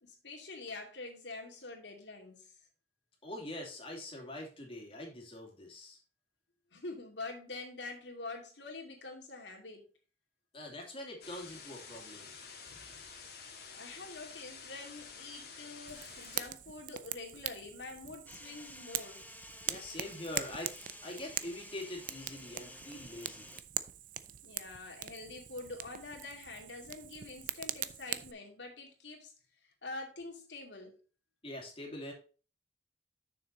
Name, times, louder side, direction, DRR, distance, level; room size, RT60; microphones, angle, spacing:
voice 1, 0.0-2.5 6.7-9.9 12.7-13.0 13.7-19.2 24.4-29.3 29.6-31.0, left 3 dB, 85° left, 2.5 m, -46 dB
voice 2, 3.2-6.0 10.5-12.4 19.7-23.5 31.4-32.1, left 1 dB, 30° left, 2.5 m, -44 dB
sound 1, 11.2-16.5, left 5 dB, 60° left, 2.0 m, -50 dB
Fire, 15.9-28.3, right 11 dB, 50° right, 0.5 m, -42 dB
sound 2, 18.3-23.6, left 2 dB, 10° left, 0.8 m, -52 dB
6.9 x 6.5 x 4.1 m
head